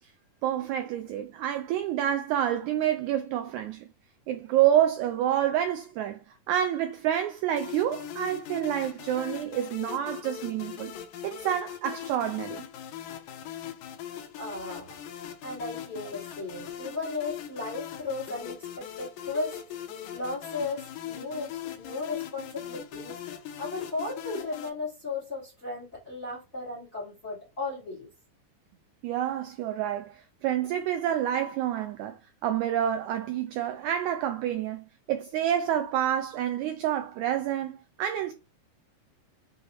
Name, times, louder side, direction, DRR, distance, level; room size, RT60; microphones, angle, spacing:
voice 1, 0.4-3.9 4.3-10.9 11.2-12.7 29.0-38.3, right 11 dB, 80° right, 1.7 m, -28 dB
sound 1, 7.6-24.7, left 10 dB, 80° left, 1.9 m, -40 dB
voice 2, 14.4-15.0 15.4-19.6 20.1-23.2 23.6-28.1, left 3 dB, 30° left, 1.6 m, -35 dB
6.4 x 2.5 x 2.9 m
omnidirectional pair, 3.7 m